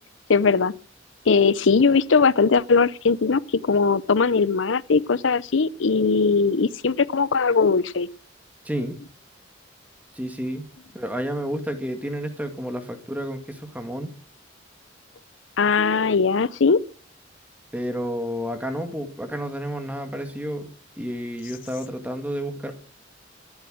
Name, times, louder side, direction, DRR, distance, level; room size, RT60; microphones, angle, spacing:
voice 1, 0.3-0.7 1.2-8.1 15.6-16.8, left 4 dB, 80° left, 0.7 m, -20 dB
voice 2, 8.6-9.0 10.1-10.7 10.9-14.1 17.7-20.7 21.0-22.7, equal, 10° right, 1.9 m, -30 dB
14.5 x 11.5 x 6.3 m
head